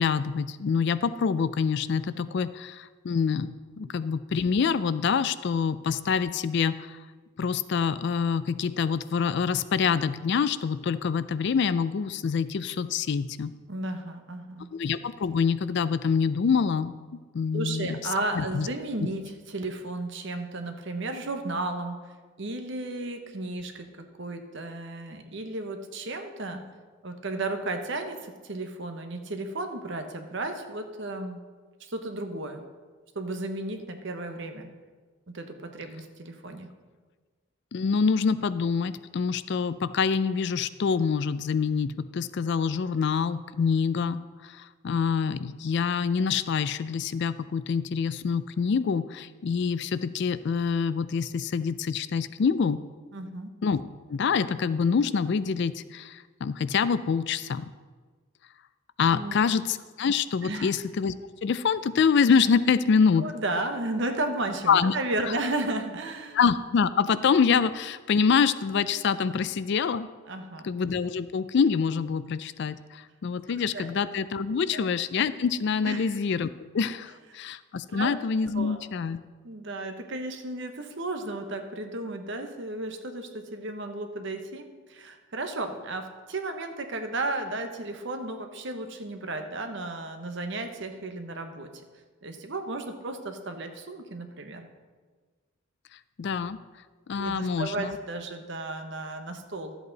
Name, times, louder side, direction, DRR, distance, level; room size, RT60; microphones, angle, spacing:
voice 1, 0.0-3.5 3.8-7.0 7.4-13.5 14.7-17.0 17.3-18.0 18.3-18.7 37.7-52.8 53.6-53.8 54.1-57.7 59.0-61.1 61.4-63.3 64.7-65.0 66.3-70.1 70.6-76.5 76.7-79.2 96.2-96.6 97.1-98.0, left 6 dB, 55° left, 15 dB, 0.4 m, -26 dB
voice 2, 13.7-14.7 17.5-22.0 22.4-26.6 27.0-31.4 31.8-32.7 33.1-34.7 35.3-36.7 53.1-53.5 59.1-59.3 60.4-60.7 63.2-66.4 70.3-70.7 73.5-73.9 74.7-74.9 75.8-76.2 77.9-78.1 78.5-78.8 79.4-91.7 92.2-94.7 97.1-99.8, right 2 dB, 60° right, 6 dB, 1.0 m, -34 dB
12.5 x 8.0 x 4.0 m, 1.4 s
head